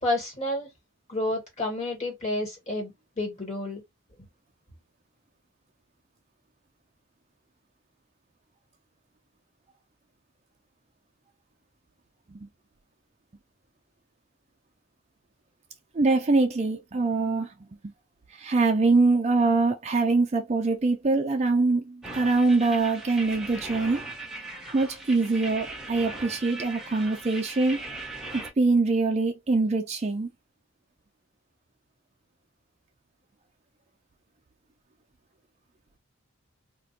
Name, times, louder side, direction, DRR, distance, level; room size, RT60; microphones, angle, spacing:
voice 1, 0.0-0.7 1.1-3.8, left 2 dB, 30° left, 1.5 m, -30 dB
voice 2, 15.9-17.5 17.8-17.9 18.3-24.0 24.7-27.8 28.6-30.3, right 3 dB, 30° right, 0.4 m, -24 dB
sound 1, 22.0-28.5, right 2 dB, ahead, 0.7 m, -39 dB
2.5 x 2.2 x 3.9 m
head